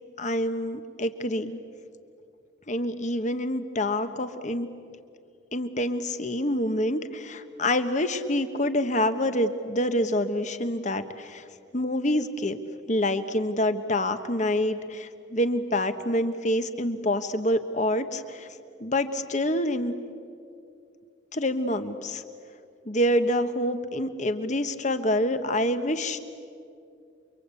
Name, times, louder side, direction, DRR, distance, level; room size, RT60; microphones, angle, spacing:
voice 1, 0.2-1.6 2.7-4.7 5.5-11.4 11.7-12.6 12.9-18.5 18.8-19.9 21.3-22.2 22.8-26.2, left 1 dB, 35° left, 9 dB, 1.3 m, -27 dB
29.0 x 24.5 x 8.4 m, 2.4 s
head